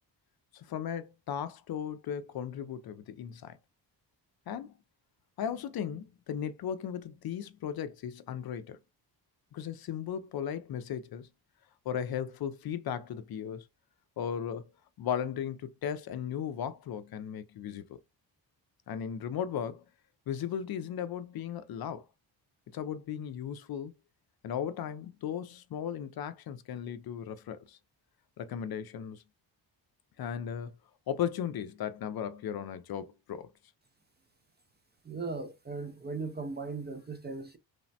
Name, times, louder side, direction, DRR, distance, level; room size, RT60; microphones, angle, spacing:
voice 1, 0.5-3.6 4.5-4.7 5.4-8.8 9.5-11.3 11.9-13.7 14.2-14.7 15.0-18.0 18.9-19.8 20.3-22.1 22.7-23.9 24.4-27.8 28.4-29.2 30.2-30.8 31.1-33.5, left 8 dB, 55° left, 0.5 m, -36 dB
voice 2, 35.0-37.6, right 4 dB, 25° right, 0.4 m, -38 dB
3.3 x 2.0 x 2.6 m
cardioid pair, 75°, 44 cm